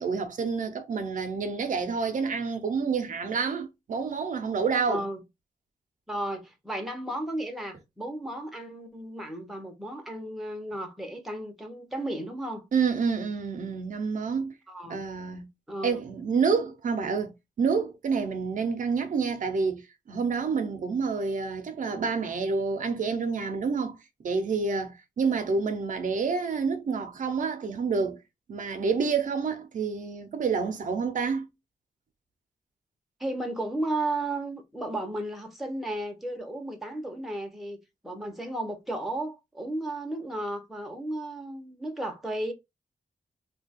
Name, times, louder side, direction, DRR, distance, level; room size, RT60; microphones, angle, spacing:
voice 1, 0.0-5.0 12.7-14.5 14.9-15.5 15.8-24.0 24.2-28.2 28.5-31.5, right 5 dB, 60° right, 0.6 m, -28 dB
voice 2, 4.9-5.2 6.1-12.6 14.7-15.0 15.7-16.0 33.2-42.5, right 1 dB, ahead, 0.7 m, -34 dB
2.8 x 2.2 x 4.0 m
wide cardioid pair, 170°, 15 cm